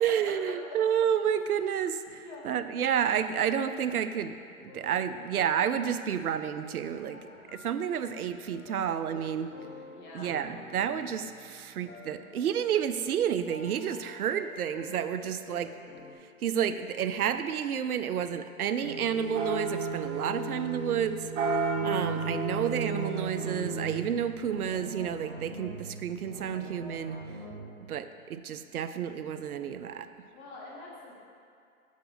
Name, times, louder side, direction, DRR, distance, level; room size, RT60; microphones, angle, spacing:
voice 1, 0.0-7.2 7.5-9.5 10.1-15.7 16.4-21.3 21.8-27.2 27.9-30.1, right 8 dB, 90° right, 11 dB, 0.5 m, -30 dB
sound 1, 4.6-16.1, left 2 dB, 80° left, 1.5 m, -50 dB
voice 2, 7.0-7.5 9.9-10.3 15.1-15.6 30.3-31.2, left 3 dB, 35° left, -4 dB, 1.7 m, -47 dB
sound 2, 18.8-24.0, right 4 dB, 55° right, 0.9 m, -32 dB
sound 3, 21.7-27.7, right 2 dB, 15° right, 0.4 m, -43 dB
6.5 x 5.0 x 5.2 m, 2.4 s
hypercardioid pair, 135°, 43 cm